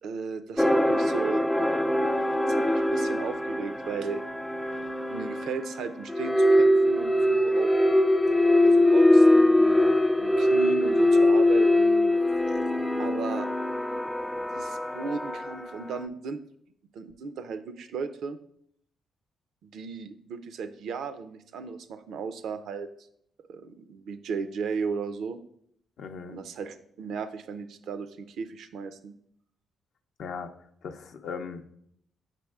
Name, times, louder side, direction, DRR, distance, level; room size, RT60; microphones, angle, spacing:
voice 1, 0.0-1.4 2.4-4.2 5.1-7.7 8.6-12.1 13.0-13.5 14.3-16.4 16.9-18.4 19.6-22.9 23.5-25.4 26.3-29.1, right 5 dB, 75° right, 11 dB, 0.4 m, -36 dB
sound 1, 0.6-15.9, left 1 dB, 5° left, 0.3 m, -22 dB
voice 2, 26.0-26.4 30.2-30.5 30.8-31.8, left 5 dB, 70° left, 6 dB, 0.5 m, -38 dB
7.4 x 6.2 x 2.3 m, 0.70 s
cardioid pair, 70°, 0 cm